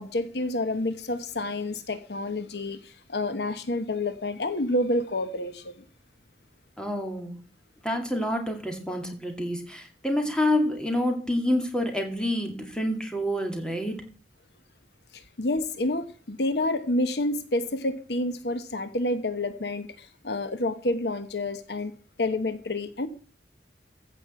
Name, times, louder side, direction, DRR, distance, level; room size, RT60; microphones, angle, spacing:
voice 1, 0.0-5.8 15.1-21.9 22.2-23.1, left 2 dB, 65° left, 1.0 m, -29 dB
voice 2, 6.8-7.4 7.8-14.0, left 1 dB, 5° left, 2.3 m, -28 dB
15.0 x 5.3 x 7.6 m
head